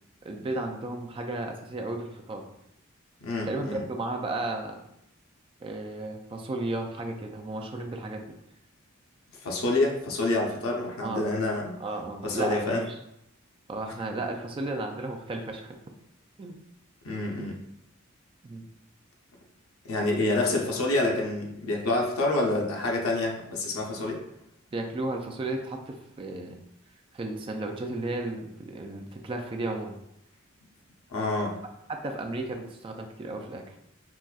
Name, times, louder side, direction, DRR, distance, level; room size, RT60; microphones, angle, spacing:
voice 1, 0.2-2.5 3.5-4.9 5.6-8.3 11.0-11.3 11.8-12.9 13.7-15.8 16.4-16.6 18.4-18.6 24.7-26.6 27.1-29.9 31.9-33.6, right 2 dB, 25° right, 3 dB, 0.3 m, -34 dB
voice 2, 3.2-3.8 9.4-11.8 12.2-12.8 17.0-17.5 19.8-24.2 31.1-31.6, left 2 dB, 90° left, 0 dB, 0.6 m, -27 dB
3.9 x 2.2 x 2.3 m, 0.79 s
head